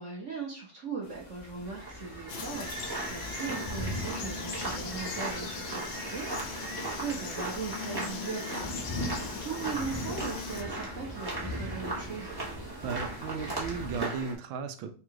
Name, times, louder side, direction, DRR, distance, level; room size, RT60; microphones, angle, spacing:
voice 1, 0.0-9.1 9.4-12.4, right 5 dB, 45° right, -2 dB, 1.0 m, -39 dB
sound 1, 1.0-14.0, left 1 dB, 35° left, 0.7 m, -42 dB
sound 2, 1.6-14.3, right 2 dB, 25° right, 0.5 m, -38 dB
Frog, 2.3-10.6, left 6 dB, 75° left, 1.4 m, -40 dB
voice 2, 12.8-14.9, right 6 dB, 75° right, 8 dB, 1.3 m, -35 dB
3.8 x 2.4 x 4.5 m, 0.39 s
omnidirectional pair, 2.4 m